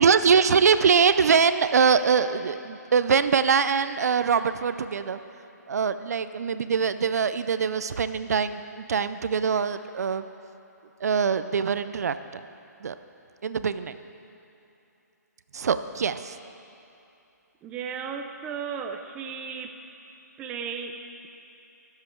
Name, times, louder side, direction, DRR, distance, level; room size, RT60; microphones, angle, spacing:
voice 1, 0.0-5.2 5.7-10.3 11.0-12.4 12.8-12.9 13.4-14.0 15.5-16.4, right 6 dB, 60° right, 12 dB, 0.5 m, -23 dB
voice 2, 17.6-19.8 20.4-21.3, right 6 dB, 10° right, 4 dB, 0.5 m, -35 dB
20.0 x 7.6 x 4.5 m, 2.9 s
hypercardioid pair, 160°, 10 cm